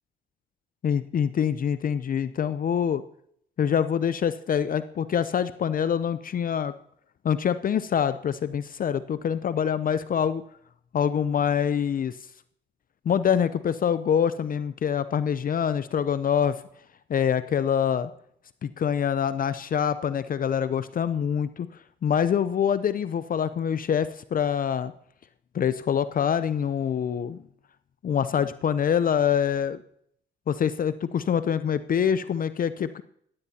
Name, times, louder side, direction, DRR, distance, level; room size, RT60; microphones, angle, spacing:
voice 1, 0.8-3.0 3.6-6.7 7.2-10.4 10.9-12.2 13.1-16.6 17.1-18.1 18.6-24.9 25.5-27.4 28.0-29.8 30.5-33.0, left 8 dB, 45° left, 14 dB, 0.6 m, -25 dB
15.5 x 14.0 x 2.8 m, 0.68 s
supercardioid pair, 75°, 19 cm